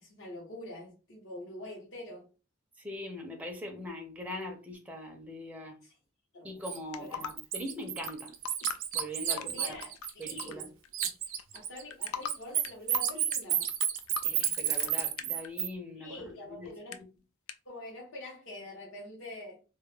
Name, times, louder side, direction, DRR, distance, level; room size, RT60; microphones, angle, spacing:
voice 1, 0.0-2.3 5.8-5.9 6.3-6.6 7.0-7.3 7.6-7.7 9.3-10.7 11.5-13.7 16.0-17.0 17.6-19.6, left 1 dB, 65° left, 0.8 m, -45 dB
voice 2, 2.8-5.8 6.4-8.3 8.9-9.8 10.2-10.7 14.2-16.7, left 1 dB, 5° right, 0.4 m, -41 dB
Bird, 6.7-6.8 7.2-10.7 10.9-15.7, right 10 dB, 70° right, 0.4 m, -31 dB
sound 1, 6.9-7.3 8.0-8.1 8.5-10.5 10.8-11.6 11.9-12.3 12.6-15.5 16.7-17.0 17.5-17.6, left 8 dB, 85° left, 0.3 m, -39 dB
2.2 x 2.1 x 3.1 m
head